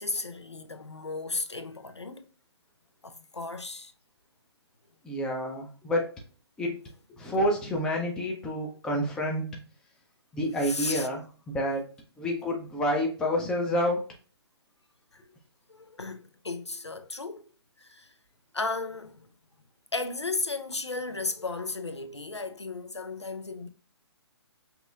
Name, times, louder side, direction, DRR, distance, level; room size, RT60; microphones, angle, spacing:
voice 1, 0.0-2.3 3.0-3.9 10.6-11.1 15.1-15.2 15.7-17.4 17.8-18.1 18.5-19.3 19.9-23.7, left 3 dB, 85° left, 0.6 m, -34 dB
voice 2, 5.0-6.1 6.6-6.8 7.2-9.5 10.3-11.2 11.5-11.8 12.2-14.0, equal, 5° left, 0.5 m, -28 dB
5.2 x 2.9 x 2.3 m
figure-of-eight pair, 135°, 14 cm